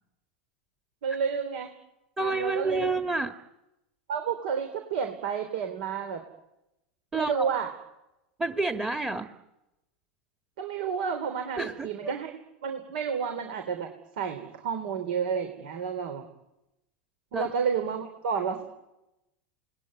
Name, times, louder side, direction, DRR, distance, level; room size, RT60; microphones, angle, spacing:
voice 1, 1.0-1.7 2.2-2.9 4.1-6.2 7.1-7.7 10.6-12.3 12.6-16.3 17.3-18.6, right 6 dB, 75° right, 6 dB, 3.3 m, -30 dB
voice 2, 2.2-3.3 7.1-7.5 8.4-9.3 11.6-12.2 17.3-17.5, right 3 dB, 15° right, 7 dB, 1.8 m, -29 dB
28.5 x 20.0 x 9.7 m, 0.93 s
hypercardioid pair, 105°, 5 cm